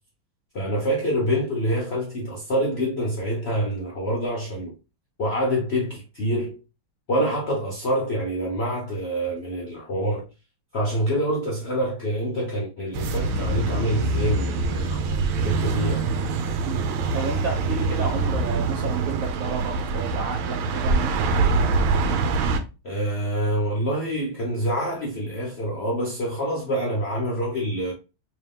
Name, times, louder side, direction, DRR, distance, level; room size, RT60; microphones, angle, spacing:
voice 1, 0.5-4.7 5.2-6.6 7.1-10.2 10.7-16.1 22.8-27.9, equal, 60° left, 0.6 m, -26 dB
sound 1, 12.9-22.6, right 3 dB, 90° right, 1.4 m, -24 dB
voice 2, 17.1-21.2, right 5 dB, 75° right, 0.8 m, -31 dB
3.5 x 3.0 x 3.4 m
omnidirectional pair, 2.2 m